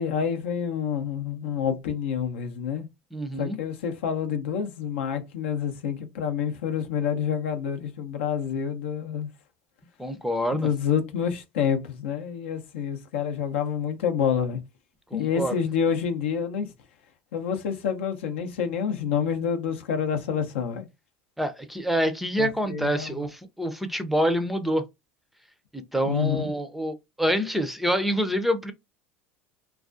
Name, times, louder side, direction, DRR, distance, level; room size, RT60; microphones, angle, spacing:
voice 1, 0.0-2.9 3.4-9.3 10.5-14.6 15.1-16.7 17.3-20.9 22.3-23.2 26.1-26.5, left 7 dB, 85° left, 0.6 m, -28 dB
voice 2, 3.1-3.6 10.0-10.7 15.1-15.6 21.4-24.8 25.7-28.7, equal, ahead, 0.4 m, -26 dB
2.4 x 2.3 x 2.4 m
supercardioid pair, 110°, 6 cm